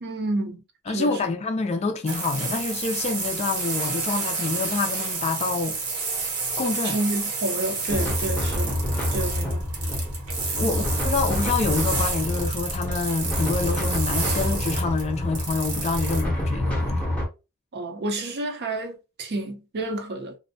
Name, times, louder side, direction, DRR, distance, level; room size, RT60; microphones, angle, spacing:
voice 1, 0.0-1.3 6.8-8.8 9.1-9.7 10.6-10.7 17.7-20.4, right 2 dB, 50° right, 0.5 m, -30 dB
voice 2, 0.9-5.8 6.6-7.0 10.5-17.0, left 4 dB, 30° left, 0.3 m, -27 dB
sound 1, 2.1-16.2, right 4 dB, 75° right, 0.9 m, -30 dB
sound 2, 7.9-17.2, left 1 dB, 5° left, 0.7 m, -27 dB
2.5 x 2.0 x 2.6 m
head